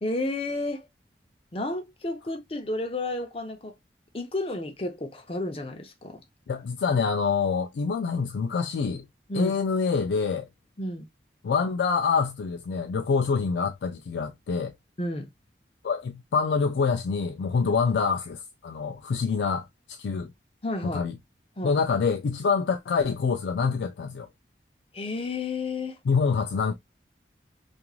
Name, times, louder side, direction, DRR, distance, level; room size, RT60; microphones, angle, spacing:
voice 1, 0.0-0.9 1.5-3.7 4.1-6.2 9.3-9.5 10.8-11.0 15.0-15.3 20.6-21.1 21.6-21.8 24.9-26.0, left 2 dB, 30° left, 0.5 m, -31 dB
voice 2, 6.5-9.1 9.3-10.5 11.4-14.7 15.8-20.3 20.8-21.1 21.6-24.3 26.1-26.7, left 5 dB, 80° left, 0.3 m, -26 dB
3.0 x 2.4 x 2.2 m
head